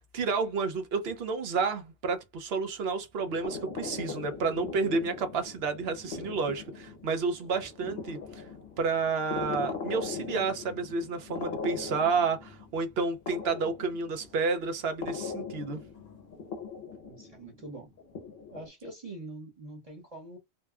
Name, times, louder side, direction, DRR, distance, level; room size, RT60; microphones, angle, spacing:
voice 1, 0.1-8.5 8.8-15.8, right 4 dB, 70° right, 0.9 m, -30 dB
sound 1, 3.2-18.7, left 5 dB, 60° left, 0.9 m, -40 dB
voice 2, 17.0-17.9 18.5-20.4, right 2 dB, 35° right, 0.9 m, -44 dB
2.9 x 2.2 x 2.3 m
omnidirectional pair, 1.1 m